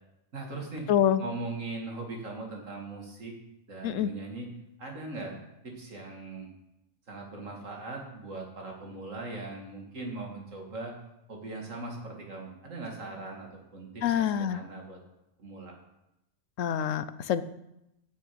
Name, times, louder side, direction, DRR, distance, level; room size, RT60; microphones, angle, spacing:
voice 1, 0.3-0.9 1.2-3.3 3.7-4.5 4.8-5.4 5.6-6.5 7.1-10.9 11.3-15.0 15.4-15.7, right 2 dB, 85° right, 0 dB, 2.6 m, -40 dB
voice 2, 0.9-1.2 3.8-4.1 14.0-14.6 16.6-17.4, left 9 dB, 85° left, 13 dB, 1.1 m, -26 dB
9.4 x 6.5 x 8.5 m, 0.88 s
omnidirectional pair, 1.3 m